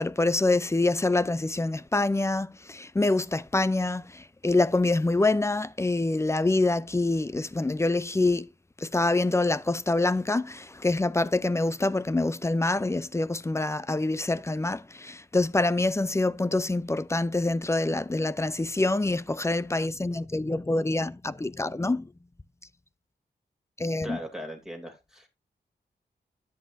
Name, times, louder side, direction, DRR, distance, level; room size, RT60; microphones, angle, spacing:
voice 1, 0.0-8.5 8.8-22.1 23.8-24.2, left 2 dB, 15° left, 0.4 m, -26 dB
voice 2, 24.0-25.3, equal, 5° right, 2.7 m, -39 dB
10.5 x 9.0 x 2.6 m
wide cardioid pair, 110°, 18 cm